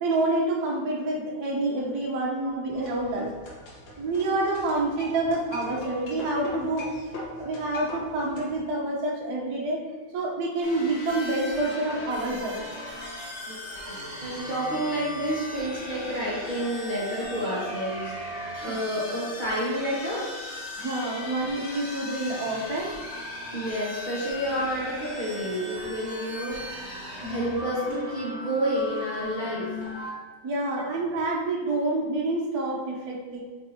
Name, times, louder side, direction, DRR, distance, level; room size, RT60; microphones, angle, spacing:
voice 1, 0.0-3.3 4.0-7.0 7.4-9.8 10.1-12.6 18.7-18.8 20.8-22.9 30.4-33.4, right 2 dB, 55° right, -2 dB, 1.3 m, -28 dB
sound 1, 2.7-8.6, left 1 dB, 60° left, 1.6 m, -40 dB
sound 2, 10.6-30.1, left 1 dB, 20° right, 1.6 m, -37 dB
voice 2, 13.5-20.3 23.5-26.6 27.2-29.8, equal, 25° left, -9 dB, 1.4 m, -30 dB
7.7 x 4.4 x 2.8 m, 1.3 s
omnidirectional pair, 2.1 m